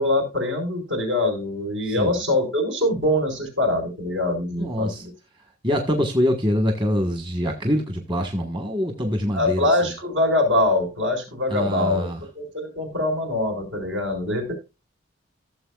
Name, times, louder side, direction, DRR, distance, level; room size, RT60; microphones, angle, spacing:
voice 1, 0.0-4.9 9.3-12.1 12.3-14.5, left 1 dB, 75° right, 5.0 m, -23 dB
voice 2, 1.9-2.2 4.6-5.0 5.6-9.9 11.5-12.2, equal, 25° right, 1.4 m, -24 dB
16.0 x 7.2 x 2.4 m
head